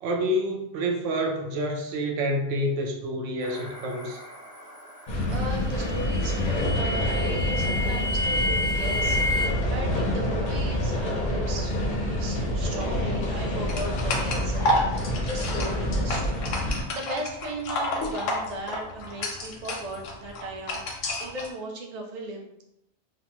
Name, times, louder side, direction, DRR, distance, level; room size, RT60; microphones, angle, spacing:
voice 1, 0.0-4.2, equal, 85° right, 2 dB, 0.9 m, -28 dB
sound 1, 3.4-9.5, left 2 dB, 10° right, 0.6 m, -31 dB
sound 2, 5.1-16.8, left 1 dB, 55° left, 0.5 m, -27 dB
voice 2, 5.3-20.8 21.2-22.6, right 1 dB, 55° right, 1 dB, 0.4 m, -37 dB
sound 3, 13.7-21.5, left 1 dB, 90° left, 0.9 m, -31 dB
3.0 x 2.0 x 2.8 m, 0.82 s
omnidirectional pair, 1.2 m